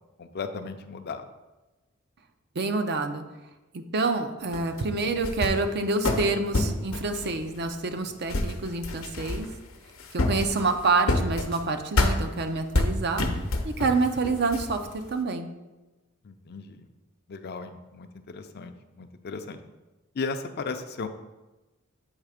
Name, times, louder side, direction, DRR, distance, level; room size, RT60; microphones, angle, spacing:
voice 1, 0.2-1.2 16.2-16.9 17.3-19.6 20.1-21.1, left 4 dB, 50° left, 8 dB, 0.5 m, -36 dB
voice 2, 2.6-3.2 3.7-9.5 10.1-13.3 13.6-14.8 15.1-15.5, right 3 dB, 50° right, 6 dB, 0.5 m, -27 dB
sound 1, 4.5-5.7 6.0-8.0 8.3-9.7 10.0-11.6 12.0-12.2 12.7-14.0 14.2-15.1, left 2 dB, 85° left, 0.8 m, -27 dB
8.1 x 3.2 x 4.9 m, 1.1 s
head